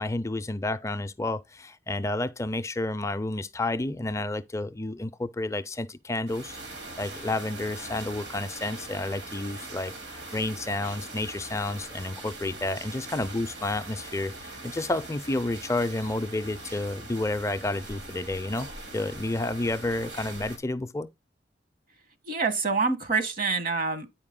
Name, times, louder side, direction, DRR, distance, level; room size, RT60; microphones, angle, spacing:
voice 1, 0.0-6.6 7.0-21.1, left 2 dB, 15° left, 0.4 m, -30 dB
sound 1, 6.3-20.6, right 2 dB, 70° right, 2.3 m, -42 dB
voice 2, 22.2-24.1, right 4 dB, 50° right, 1.2 m, -26 dB
9.1 x 4.9 x 3.7 m
head